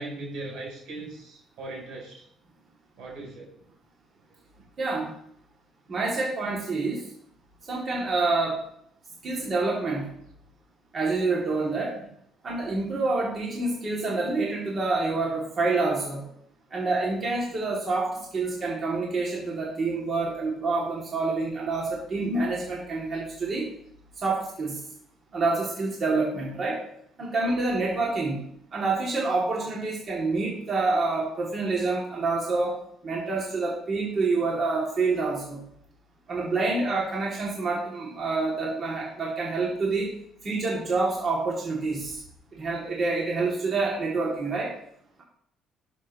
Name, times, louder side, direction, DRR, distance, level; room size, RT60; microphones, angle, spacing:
voice 1, 0.0-2.2 3.0-3.5, right 2 dB, 75° right, -2 dB, 4.0 m, -38 dB
voice 2, 4.8-5.1 5.9-7.1 7.7-8.6 9.2-10.1 10.9-12.0 12.4-16.2 16.7-23.7 24.2-24.8 25.3-26.8 27.2-28.4 28.7-35.6 36.3-40.1 40.4-42.2 42.5-44.7, right 3 dB, 40° right, -4 dB, 2.7 m, -27 dB
11.0 x 6.8 x 3.2 m, 0.70 s
cardioid pair, 100°, 0 cm